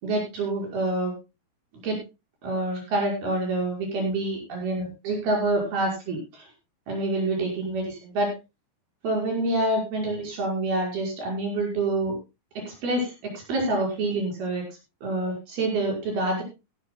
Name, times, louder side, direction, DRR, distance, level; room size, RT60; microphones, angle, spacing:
voice 1, 0.0-1.1 1.8-2.0 2.4-6.5 6.9-8.3 9.0-12.2 12.6-14.6 15.0-16.4, right 2 dB, 80° right, 0 dB, 7.5 m, -27 dB
17.0 x 15.0 x 2.3 m, 0.26 s
omnidirectional pair, 4.3 m